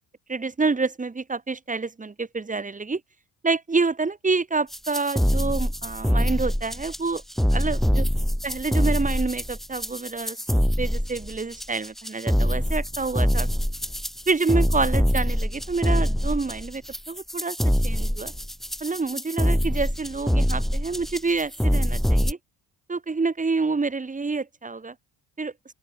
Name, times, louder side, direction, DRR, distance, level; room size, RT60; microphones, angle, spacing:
voice 1, 0.3-3.0 3.4-7.2 7.5-8.0 8.4-13.5 14.3-16.8 17.1-17.6 17.8-18.3 18.8-22.4 22.9-24.9 25.4-25.5, right 4 dB, 15° right, 0.9 m, -27 dB
sound 1, 4.7-22.3, equal, ahead, 0.4 m, -24 dB
open air
supercardioid pair, 65°, 47 cm